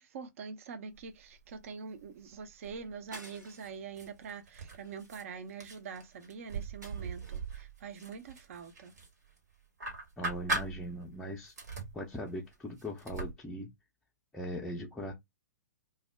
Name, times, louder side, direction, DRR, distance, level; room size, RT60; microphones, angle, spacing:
voice 1, 0.0-8.9, right 5 dB, 50° right, 0.5 m, -44 dB
sound 1, 0.9-1.7 2.0-3.1 3.6-5.2 5.6-9.4 9.8-11.2 11.4-13.3, right 2 dB, 65° right, 1.1 m, -40 dB
sound 2, 3.1-3.9 4.3-4.5 4.8-5.8 6.8-7.6, right 1 dB, 90° right, 1.1 m, -53 dB
voice 2, 10.2-11.5 11.9-13.7 14.3-15.1, equal, 5° left, 0.4 m, -39 dB
2.2 x 2.0 x 3.3 m
figure-of-eight pair, 115°, 10 cm